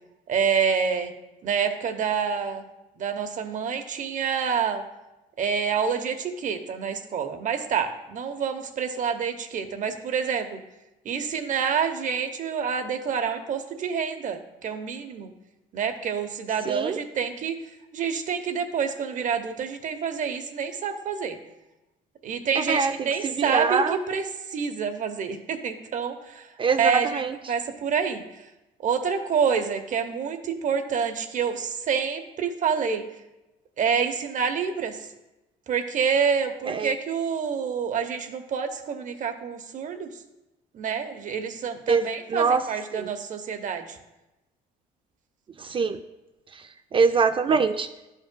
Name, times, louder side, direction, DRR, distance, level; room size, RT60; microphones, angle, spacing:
voice 1, 0.3-1.1 1.4-2.6 3.0-4.8 5.4-10.6 11.0-15.3 15.7-17.6 17.9-21.4 22.2-26.5 26.8-27.2 27.5-28.2 28.8-33.0 33.8-35.1 35.7-40.1 40.7-44.0, right 6 dB, 50° right, 8 dB, 0.8 m, -27 dB
voice 2, 16.7-17.0 22.6-24.0 26.6-27.3 36.7-36.9 41.9-42.0 42.3-42.6 42.9-43.1 45.6-46.0 46.5-46.6 46.9-47.9, right 5 dB, 30° right, 8 dB, 0.3 m, -23 dB
12.0 x 5.4 x 2.2 m, 0.98 s
cardioid pair, 110°, 17 cm